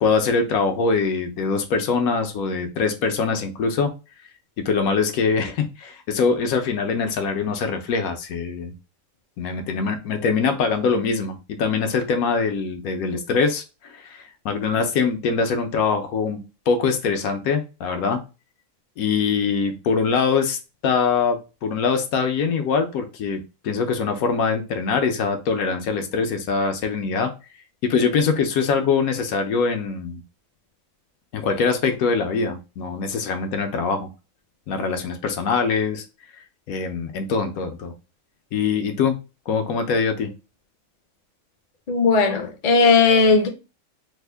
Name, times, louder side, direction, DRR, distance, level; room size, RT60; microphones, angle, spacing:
voice 1, 0.0-3.9 4.6-8.7 9.4-18.2 19.0-20.6 20.8-27.3 27.8-30.2 31.3-34.1 34.7-36.0 36.7-37.9 38.5-39.1 39.5-40.3, left 5 dB, 85° left, 1.1 m, -23 dB
voice 2, 41.9-43.5, left 4 dB, 55° left, 0.4 m, -17 dB
3.5 x 2.1 x 3.3 m
omnidirectional pair, 1.5 m